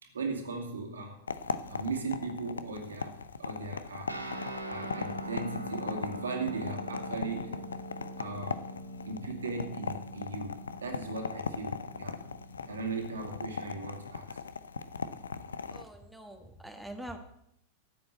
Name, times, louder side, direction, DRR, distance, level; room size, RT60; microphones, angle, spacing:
voice 1, 0.0-1.2 1.7-4.2 4.6-7.7 8.2-8.6 9.1-10.5 10.8-12.2 12.7-14.4, right 3 dB, 70° right, 3 dB, 2.6 m, -37 dB
sound 1, 1.3-15.8, left 5 dB, 70° left, 0.7 m, -39 dB
sound 2, 4.1-13.0, right 1 dB, 90° right, 1.7 m, -43 dB
voice 2, 15.7-17.2, right 1 dB, ahead, 4 dB, 1.5 m, -44 dB
13.5 x 7.7 x 8.1 m, 0.75 s
figure-of-eight pair, 90°, 0 cm